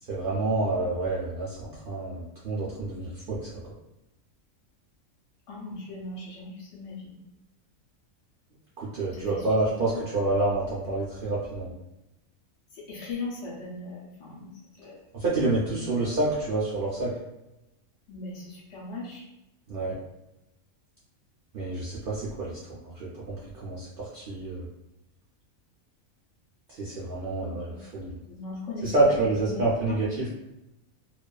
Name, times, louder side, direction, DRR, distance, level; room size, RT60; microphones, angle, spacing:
voice 1, 0.1-3.5 8.8-11.7 15.1-17.1 19.7-20.0 21.5-24.6 26.7-28.2 28.8-30.3, right 2 dB, 65° right, -7 dB, 0.5 m, -28 dB
voice 2, 5.5-7.1 9.1-9.4 9.9-10.0 12.7-14.5 14.8-15.0 18.1-19.2 27.4-27.8 28.1-29.2 29.4-30.0, left 3 dB, 65° left, -4 dB, 0.9 m, -38 dB
2.4 x 2.3 x 2.2 m, 0.93 s
omnidirectional pair, 1.4 m